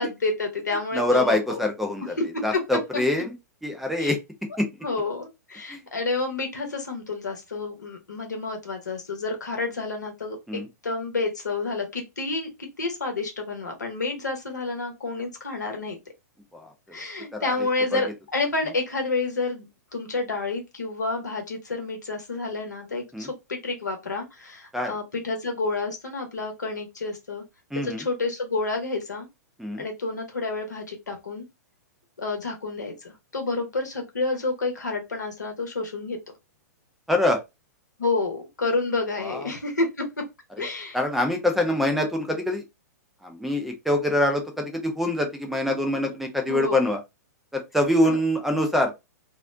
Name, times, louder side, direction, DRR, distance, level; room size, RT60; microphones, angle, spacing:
voice 1, 0.0-1.6 2.2-2.6 4.0-4.1 4.8-12.5 12.8-16.0 16.9-27.4 27.8-29.3 29.8-31.5 32.2-36.2 38.0-40.3 40.6-41.0 46.5-46.8 48.0-48.2, left 3 dB, 80° left, 0.9 m, -29 dB
voice 2, 0.9-2.1 2.4-3.3 3.6-4.2 4.6-4.7 5.7-5.8 10.5-10.7 16.5-16.7 17.3-17.5 17.9-18.0 23.1-23.3 24.7-24.9 27.7-28.1 29.6-29.8 37.1-37.4 39.2-39.5 40.6-40.7 40.9-42.6 43.2-47.0 47.5-48.9, left 1 dB, ahead, 0.5 m, -24 dB
2.5 x 2.0 x 2.4 m
figure-of-eight pair, 110°, 9 cm